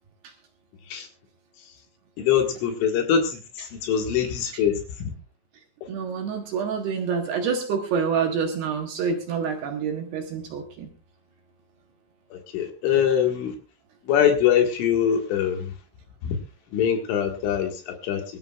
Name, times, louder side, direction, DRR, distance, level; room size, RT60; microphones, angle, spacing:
voice 1, 2.2-4.8 12.3-13.5 14.1-15.7 16.2-16.4 16.7-18.2, left 8 dB, 70° left, 4 dB, 4.1 m, -23 dB
voice 2, 5.9-10.9, right 6 dB, 65° right, 2 dB, 3.0 m, -27 dB
24.5 x 13.5 x 2.4 m, 0.32 s
omnidirectional pair, 6.0 m